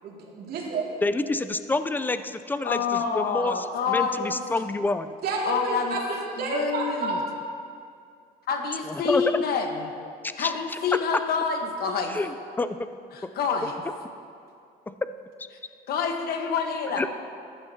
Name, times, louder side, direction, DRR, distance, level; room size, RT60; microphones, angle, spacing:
voice 1, 0.0-0.9 5.2-7.2, right 3 dB, 65° right, -3 dB, 2.3 m, -30 dB
voice 2, 1.0-5.1 8.9-9.2 10.2-10.5 12.1-12.8 13.2-13.3 14.9-15.0 17.0-17.1, left 2 dB, 10° left, 11 dB, 0.4 m, -28 dB
voice 3, 2.6-4.4 5.4-6.0 6.4-7.1 8.5-9.9 10.4-12.2 13.1-13.7 15.9-17.1, left 6 dB, 65° left, 4 dB, 1.3 m, -27 dB
14.5 x 11.0 x 2.8 m, 2.4 s
cardioid pair, 110°, 17 cm